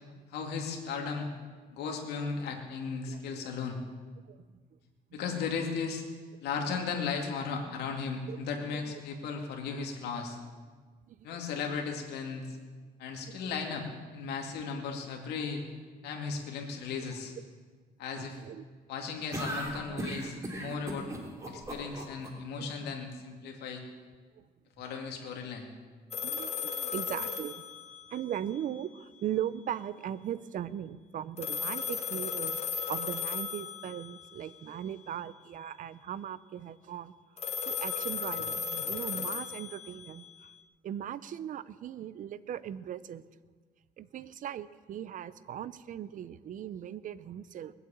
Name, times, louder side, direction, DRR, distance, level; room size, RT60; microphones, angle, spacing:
voice 1, 0.3-1.3 1.7-3.8 5.1-6.0 6.4-10.4 11.2-12.6 13.0-13.9 14.1-15.6 16.0-17.3 18.0-18.4 18.9-21.1 21.5-23.8 24.8-25.7, left 5 dB, 90° left, 2 dB, 2.4 m, -36 dB
voice 2, 11.1-11.4 13.2-13.6 18.1-18.6 22.6-22.7 24.4-24.5 26.2-27.6 28.1-32.6 32.9-37.1 37.6-40.2 40.8-43.2 44.0-47.7, right 10 dB, 55° right, 16 dB, 0.7 m, -39 dB
sound 1, 19.3-22.3, right 1 dB, 20° right, 3.1 m, -37 dB
sound 2, 26.1-28.4 31.4-34.2 37.4-40.3, left 6 dB, 40° left, 1.8 m, -35 dB
20.5 x 8.2 x 8.7 m, 1.5 s
cardioid pair, 115°, 16 cm